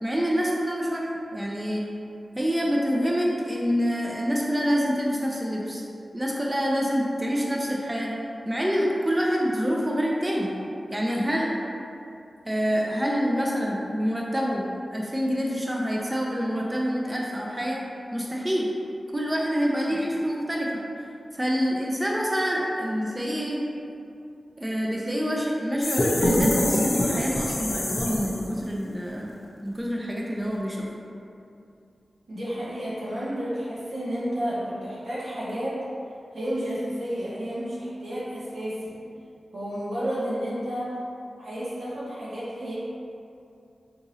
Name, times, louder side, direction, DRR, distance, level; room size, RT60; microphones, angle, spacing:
voice 1, 0.0-1.8 2.3-5.8 6.1-8.1 8.4-10.5 10.9-11.5 12.4-17.8 18.1-18.7 19.1-20.8 21.3-23.6 24.6-30.9, equal, 15° right, -3 dB, 0.4 m, -26 dB
sound 1, 25.8-28.6, left 1 dB, 60° left, 0.5 m, -24 dB
voice 2, 32.3-35.8 36.3-39.0 39.5-41.0 41.4-42.8, equal, 85° right, -9 dB, 1.0 m, -31 dB
3.6 x 2.9 x 2.7 m, 2.6 s
wide cardioid pair, 60°, 0 cm